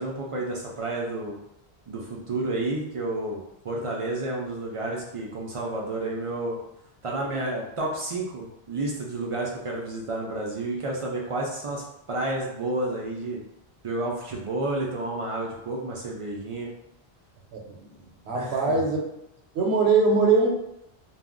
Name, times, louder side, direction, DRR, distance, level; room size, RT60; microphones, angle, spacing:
voice 1, 0.0-1.4 1.9-6.6 7.0-13.4 13.8-16.7 18.3-18.8, right 2 dB, 55° right, -3 dB, 0.3 m, -30 dB
voice 2, 17.5-19.0 19.5-20.5, right 4 dB, 80° right, 0 dB, 0.9 m, -22 dB
2.4 x 2.0 x 3.5 m, 0.83 s
omnidirectional pair, 1.1 m